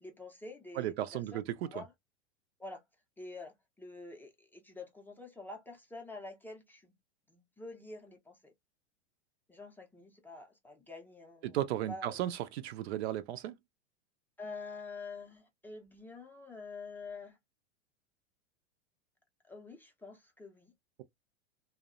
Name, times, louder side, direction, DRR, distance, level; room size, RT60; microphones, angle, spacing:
voice 1, 0.0-1.9 2.6-2.8 3.2-7.0 7.3-8.5 9.5-11.6 11.9-12.3 14.4-17.4 19.5-20.7, left 3 dB, 5° left, 0.4 m, -47 dB
voice 2, 0.8-1.8 11.4-13.5, right 12 dB, 65° right, 0.5 m, -35 dB
2.6 x 2.0 x 2.4 m
hypercardioid pair, 100°, 34 cm